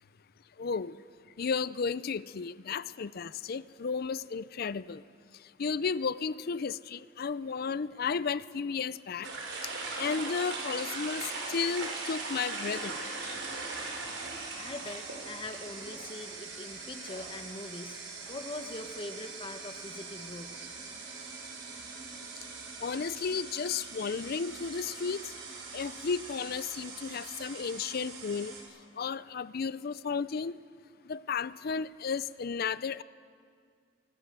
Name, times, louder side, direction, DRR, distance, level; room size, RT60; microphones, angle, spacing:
voice 1, 0.6-1.0 1.4-5.0 5.6-9.3 9.6-13.1 22.8-25.3 25.7-28.5 29.0-30.6 31.1-33.0, left 5 dB, 55° left, 17 dB, 0.5 m, -33 dB
sound 1, 9.2-28.6, right 3 dB, 80° right, 5.4 m, -41 dB
voice 2, 14.6-18.0 18.3-20.6, left 2 dB, 30° left, 6 dB, 1.3 m, -42 dB
25.0 x 19.5 x 6.8 m, 2.1 s
head